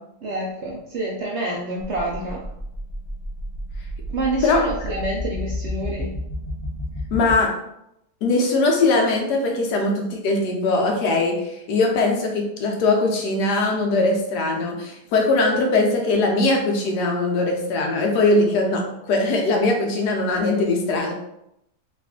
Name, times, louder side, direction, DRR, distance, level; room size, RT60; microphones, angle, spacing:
voice 1, 0.2-2.4 4.1-6.1, right 2 dB, 70° right, -3 dB, 0.6 m, -27 dB
sound 1, 1.8-7.4, equal, 30° left, 0.6 m, -31 dB
voice 2, 7.1-7.5 8.2-21.1, left 2 dB, 90° left, 1 dB, 1.3 m, -21 dB
3.1 x 2.5 x 3.5 m, 0.82 s
omnidirectional pair, 1.7 m